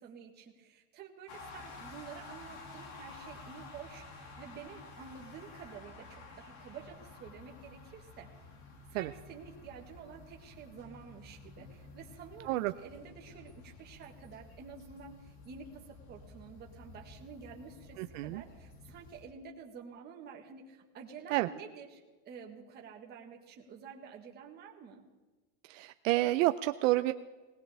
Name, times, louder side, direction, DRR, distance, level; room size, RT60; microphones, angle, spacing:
voice 1, 0.0-8.3 8.9-25.1, right 6 dB, 25° right, 1 dB, 1.6 m, -50 dB
sound 1, 1.3-19.2, left 3 dB, 50° left, 2.3 m, -52 dB
voice 2, 18.0-18.4 21.3-21.5 25.7-27.1, right 17 dB, 70° right, 9 dB, 0.6 m, -29 dB
20.0 x 18.5 x 3.5 m, 1.2 s
supercardioid pair, 175°, 41 cm